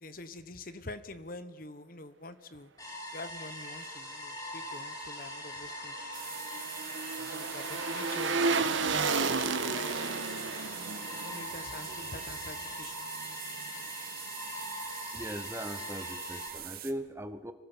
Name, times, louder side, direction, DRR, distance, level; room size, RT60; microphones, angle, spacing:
voice 1, 0.0-2.7 3.1-6.0 7.2-8.5 8.8-9.1 9.4-10.0 11.2-13.1, left 2 dB, 45° left, 12 dB, 1.1 m, -46 dB
sound 1, 2.8-16.5, left 1 dB, 20° left, 5.5 m, -42 dB
sound 2, 5.6-12.8 13.2-13.3, right 4 dB, 85° right, 1.4 m, -33 dB
sound 3, 6.1-16.9, right 12 dB, 50° right, 1.5 m, -44 dB
voice 2, 15.1-17.5, equal, 15° right, 10 dB, 1.1 m, -39 dB
25.0 x 16.0 x 7.3 m, 1.3 s
head